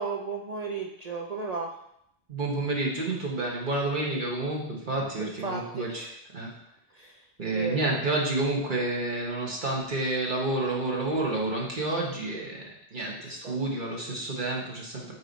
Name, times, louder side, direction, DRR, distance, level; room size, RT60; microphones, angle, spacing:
voice 1, 0.0-1.7 5.2-6.1 6.9-7.2 7.5-7.9 13.2-13.6, right 4 dB, 60° right, 0 dB, 0.4 m, -35 dB
voice 2, 2.3-6.1 6.3-6.5 7.4-12.6 12.9-15.1, right 2 dB, 40° right, -2 dB, 1.4 m, -29 dB
8.5 x 3.1 x 4.0 m, 0.76 s
omnidirectional pair, 1.3 m